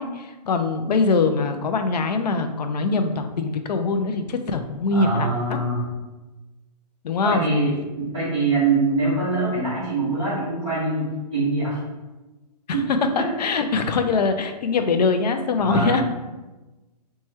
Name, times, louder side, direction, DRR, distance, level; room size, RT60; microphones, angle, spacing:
voice 1, 0.0-5.6 7.0-7.5 12.7-16.0, left 4 dB, 75° left, 7 dB, 0.5 m, -23 dB
voice 2, 4.9-5.9 7.2-11.8 12.7-13.3 15.7-16.0, right 3 dB, 10° right, -16 dB, 0.3 m, -24 dB
3.0 x 2.3 x 4.1 m, 1.1 s
hypercardioid pair, 175°, 21 cm